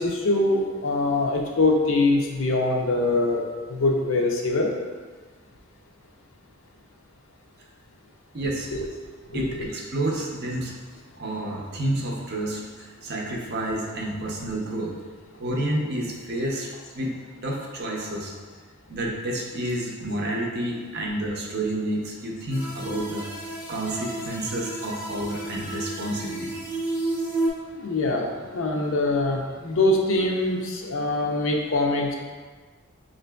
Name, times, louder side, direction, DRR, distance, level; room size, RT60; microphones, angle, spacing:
voice 1, 0.0-3.4 3.7-4.7 8.7-8.9 9.3-9.6 27.7-32.1, left 2 dB, 65° left, 0 dB, 0.5 m, -23 dB
voice 2, 8.3-8.7 9.3-10.8 11.2-15.0 15.4-18.3 18.9-23.3 23.7-26.6, right 1 dB, 45° right, -1 dB, 0.5 m, -29 dB
sound 1, 22.5-27.5, right 2 dB, 10° right, 0.7 m, -31 dB
5.8 x 2.6 x 2.2 m, 1.4 s
head